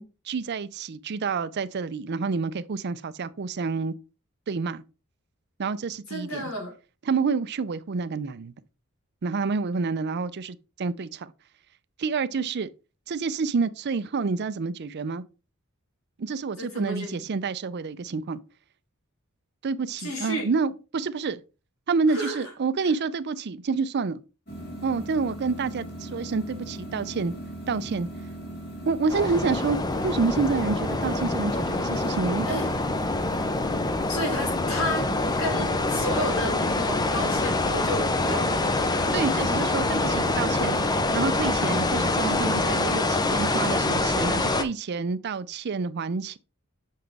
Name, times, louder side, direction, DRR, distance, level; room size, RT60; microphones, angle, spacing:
voice 1, 0.0-3.9 4.5-4.8 5.6-6.5 7.1-8.5 9.2-11.3 12.0-12.7 13.1-15.2 16.2-18.4 19.6-21.4 21.9-24.2 24.8-27.3 27.7-28.1 28.9-29.8 30.0-32.5 39.1-40.8 41.1-46.4, right 4 dB, 50° right, 0.5 m, -28 dB
voice 2, 6.1-6.7 16.6-17.2 20.0-20.5 22.1-22.5 22.8-22.9 32.4-32.7 34.1-35.1 35.4-38.6, left 1 dB, 65° left, 3.2 m, -31 dB
sound 1, 24.5-43.9, right 1 dB, 45° left, 1.9 m, -38 dB
sound 2, 29.1-44.6, left 2 dB, 20° left, 0.5 m, -25 dB
6.4 x 5.8 x 3.4 m
head